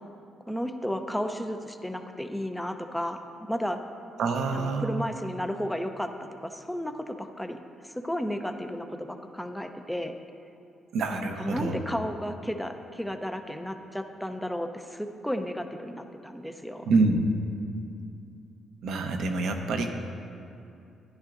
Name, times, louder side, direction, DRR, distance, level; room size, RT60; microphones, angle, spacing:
voice 1, 0.5-3.8 4.5-7.6 7.8-10.1 11.1-16.9, equal, 5° left, 6 dB, 0.6 m, -33 dB
voice 2, 4.2-5.0 10.9-11.8 16.9-17.3 18.8-19.9, right 3 dB, 75° right, 4 dB, 0.8 m, -26 dB
11.5 x 11.0 x 2.6 m, 2.6 s
cardioid pair, 90°, 0 cm